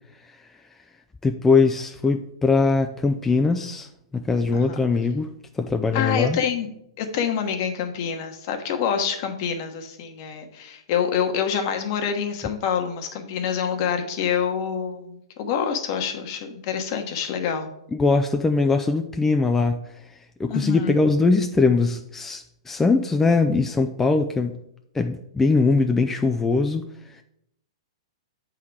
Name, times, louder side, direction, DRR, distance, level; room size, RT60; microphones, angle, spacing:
voice 1, 1.2-3.9 4.1-6.4 17.9-19.8 20.4-24.6 24.9-27.2, left 3 dB, 10° left, 5 dB, 0.4 m, -21 dB
voice 2, 5.9-6.7 7.0-17.7 20.5-21.0, left 7 dB, 50° left, 5 dB, 1.2 m, -26 dB
8.1 x 3.8 x 4.7 m, 0.78 s
hypercardioid pair, 120°, 3 cm